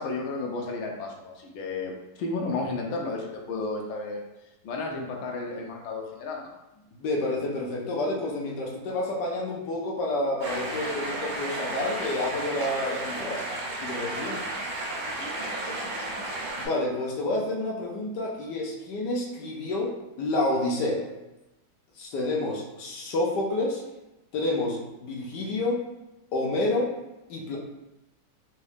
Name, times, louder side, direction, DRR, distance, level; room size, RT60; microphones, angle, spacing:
voice 1, 0.0-1.9 2.2-4.2 4.6-6.5 14.2-14.4 15.0-16.1, left 3 dB, 85° left, 0 dB, 1.5 m, -33 dB
voice 2, 7.0-13.4 13.8-14.4 16.6-21.0 22.0-23.8 24.3-25.8 26.3-26.9 27.3-27.6, left 2 dB, 65° left, -2 dB, 1.2 m, -29 dB
sound 1, 10.4-16.7, right 2 dB, 70° right, 1.5 m, -33 dB
4.1 x 2.3 x 3.3 m, 0.98 s
omnidirectional pair, 2.3 m